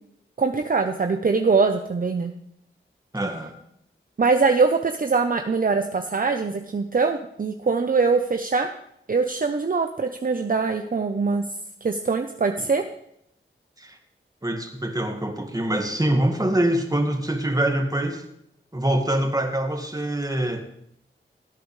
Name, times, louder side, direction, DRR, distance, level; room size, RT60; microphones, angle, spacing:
voice 1, 0.4-2.3 4.2-8.7 9.1-11.4 11.8-12.8, right 4 dB, 45° right, 6 dB, 0.7 m, -22 dB
voice 2, 3.1-3.5 13.8-14.0 14.4-18.2 18.7-20.7, right 1 dB, 15° right, 4 dB, 1.9 m, -24 dB
16.0 x 8.7 x 3.3 m, 0.75 s
cardioid pair, 50°, 21 cm